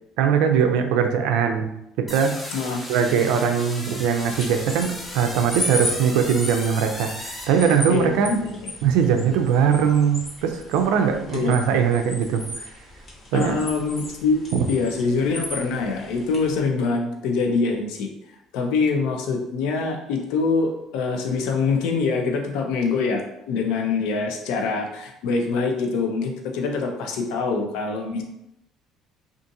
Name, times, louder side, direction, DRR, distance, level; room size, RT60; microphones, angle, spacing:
voice 1, 0.2-1.7 2.1-2.4 2.9-8.3 8.8-12.4 13.3-13.6 14.5-14.6, right 7 dB, 80° right, 5 dB, 0.3 m, -21 dB
sound 1, 2.1-8.2, equal, 10° left, 0.6 m, -36 dB
voice 2, 2.5-2.8 7.9-8.6 11.3-11.6 13.3-14.4 14.7-18.1 18.5-28.2, left 4 dB, 80° left, 3 dB, 0.5 m, -24 dB
sound 2, 4.2-16.6, left 1 dB, 35° left, 1.0 m, -36 dB
2.6 x 2.4 x 2.6 m, 0.83 s
supercardioid pair, 95°, 0 cm